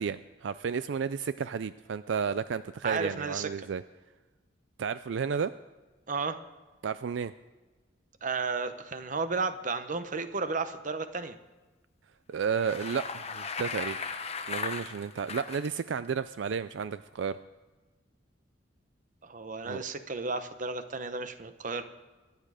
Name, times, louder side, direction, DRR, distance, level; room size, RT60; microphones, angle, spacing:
voice 1, 0.0-3.8 4.8-5.5 6.8-7.3 12.3-14.0 14.5-17.4 19.7-19.8, right 6 dB, 70° right, 14 dB, 0.4 m, -32 dB
voice 2, 2.8-3.5 6.1-6.4 8.2-11.4 19.2-21.8, right 4 dB, 45° right, 10 dB, 0.9 m, -33 dB
Bicycle, 12.4-15.7, left 5 dB, 35° left, 1.0 m, -37 dB
24.0 x 9.8 x 5.0 m, 1.3 s
head